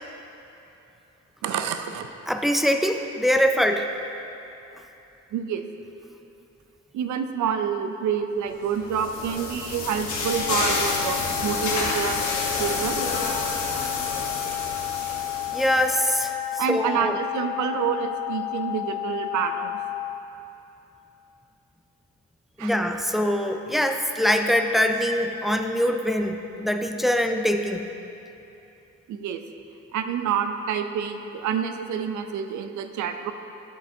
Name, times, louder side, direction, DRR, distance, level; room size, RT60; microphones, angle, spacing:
voice 1, 1.4-2.1 5.3-5.6 6.9-12.2 12.6-13.0 16.6-19.8 22.6-22.7 29.1-29.4 29.9-33.3, right 7 dB, 70° right, 8 dB, 0.6 m, -28 dB
voice 2, 2.3-3.9 15.5-17.2 22.6-27.9, equal, ahead, 5 dB, 0.4 m, -23 dB
sound 1, 8.6-16.2, left 3 dB, 75° left, 1.3 m, -29 dB
sound 2, 10.2-20.2, left 16 dB, 55° left, 0.6 m, -32 dB
9.8 x 7.6 x 2.7 m, 2.9 s
cardioid pair, 90°, 30 cm